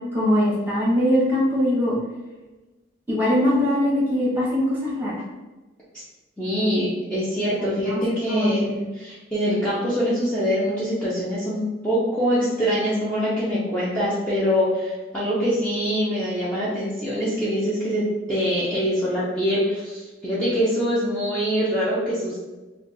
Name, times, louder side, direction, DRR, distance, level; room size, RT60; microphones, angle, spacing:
voice 1, 0.1-1.9 3.1-5.1 7.6-8.0 8.3-8.8, left 1 dB, 10° right, -6 dB, 0.9 m, -22 dB
voice 2, 6.4-22.4, equal, 5° left, -10 dB, 0.5 m, -24 dB
2.4 x 2.2 x 3.9 m, 1.2 s
head